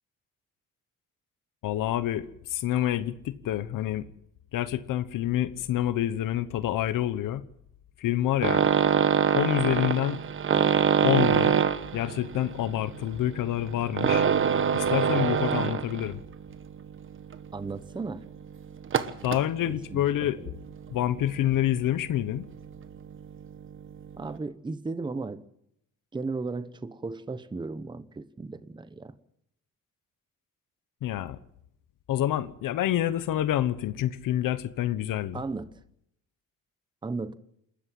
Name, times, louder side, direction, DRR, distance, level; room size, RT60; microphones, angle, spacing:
voice 1, 1.6-4.1 4.5-7.4 8.0-8.6 9.3-10.2 11.0-11.5 11.9-14.3 14.7-16.2 19.2-20.4 20.9-22.4 31.0-31.4 32.1-35.4, left 12 dB, 75° left, 1.1 m, -27 dB
sound 1, 8.4-16.2 16.5-16.8 17.3-17.4 17.7-17.8 18.8-19.5 20.7-20.9 21.3-21.7 22.5-22.6 22.8-22.9 23.1-23.2, right 7 dB, 40° right, 1.3 m, -24 dB
voice 2, 17.5-18.2 19.6-20.0 20.4-20.5 24.2-25.4 26.1-29.1 35.3-35.7 37.0-37.4, right 3 dB, 15° right, 0.9 m, -35 dB
28.5 x 13.5 x 7.6 m
cardioid pair, 145°, 32 cm